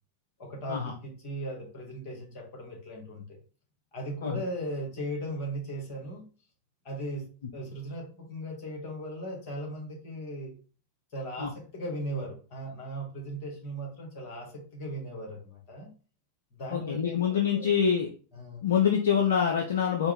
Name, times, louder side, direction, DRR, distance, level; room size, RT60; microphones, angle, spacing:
voice 1, 0.4-3.3 3.9-6.2 6.8-7.2 7.5-10.6 11.1-15.9 16.5-17.2 17.5-17.7 18.3-18.7, equal, 45° left, 0 dB, 1.8 m, -37 dB
voice 2, 16.7-18.1 18.6-20.1, left 7 dB, 65° left, 3 dB, 0.5 m, -25 dB
4.3 x 2.4 x 3.3 m, 0.38 s
figure-of-eight pair, 90°, 0 cm